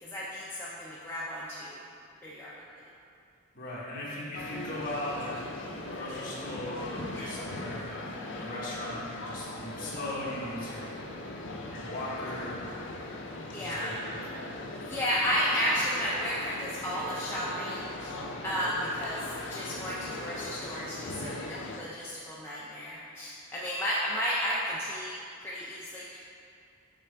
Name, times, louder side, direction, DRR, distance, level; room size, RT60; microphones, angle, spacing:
voice 1, 0.0-1.8 2.2-2.5 7.1-7.3 13.5-13.9 14.8-18.1 18.4-26.2, equal, 10° left, -8 dB, 0.5 m, -33 dB
voice 2, 3.5-5.6 5.9-8.0 8.4-10.9 11.7-12.7 13.6-14.4, left 1 dB, 40° left, -7 dB, 1.3 m, -38 dB
sound 1, 4.3-21.8, left 2 dB, 60° left, 0.5 m, -39 dB
5.9 x 5.5 x 3.4 m, 2.4 s
head